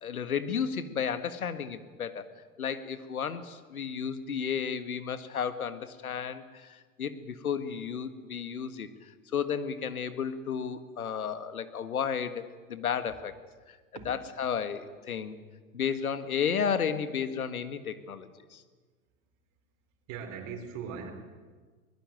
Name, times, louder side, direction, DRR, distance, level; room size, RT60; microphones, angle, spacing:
voice 1, 0.0-2.3 2.6-13.4 13.7-13.8 14.1-15.4 15.7-18.6, left 7 dB, 80° left, 11 dB, 1.8 m, -33 dB
voice 2, 20.1-21.1, right 6 dB, 45° right, 2 dB, 4.6 m, -40 dB
22.5 x 20.0 x 9.1 m, 1.4 s
hypercardioid pair, 95°, 42 cm